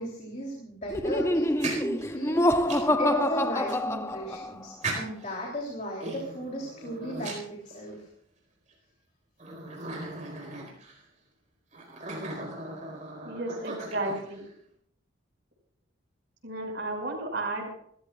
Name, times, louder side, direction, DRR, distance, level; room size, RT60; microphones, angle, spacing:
voice 1, 0.0-2.5 3.0-8.1, equal, 35° left, -2 dB, 3.5 m, -35 dB
Laughter, 0.9-4.6, left 1 dB, 15° left, 0.6 m, -26 dB
sound 1, 1.4-3.0 3.7-3.8 4.8-5.4 6.0-8.1 8.7-8.8 9.4-11.0 11.7-14.5, right 2 dB, 35° right, 4.4 m, -38 dB
voice 2, 13.2-14.5 16.4-17.7, right 2 dB, 55° right, 0 dB, 5.9 m, -33 dB
27.5 x 15.0 x 2.5 m, 0.66 s
head